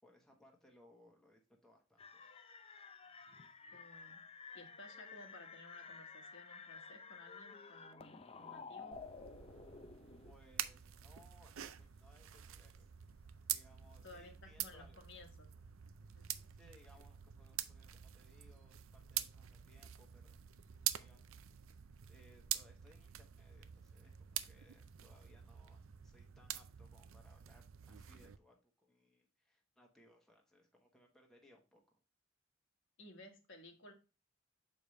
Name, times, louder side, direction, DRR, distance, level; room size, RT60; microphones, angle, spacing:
voice 1, 0.0-2.3 10.2-12.9 13.5-15.0 16.5-20.4 21.0-21.4 22.1-32.0, left 1 dB, 5° left, 0 dB, 1.1 m, -66 dB
sound 1, 2.0-10.3, left 5 dB, 30° left, 0.5 m, -53 dB
voice 2, 3.7-4.2 4.5-9.0 14.0-15.5 16.1-16.3 33.0-33.9, left 2 dB, 60° left, 3 dB, 1.5 m, -57 dB
sound 2, 8.9-28.4, right 12 dB, 80° right, 0.5 m, -46 dB
6.9 x 4.9 x 3.1 m, 0.31 s
head